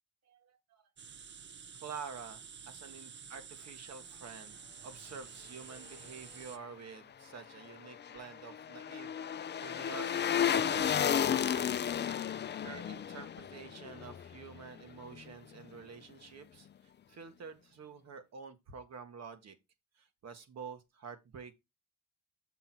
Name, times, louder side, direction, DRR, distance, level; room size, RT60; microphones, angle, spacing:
voice 1, 0.3-0.8 1.8-11.8 12.6-19.6 19.9-21.6, right 5 dB, 60° right, 1.7 m, -49 dB
sound 1, 1.0-6.6, right 6 dB, 40° right, 0.7 m, -50 dB
sound 2, 7.6-14.8 15.1-15.2, left 9 dB, 35° left, 0.5 m, -33 dB
6.7 x 3.8 x 6.0 m
cardioid pair, 90°, 30 cm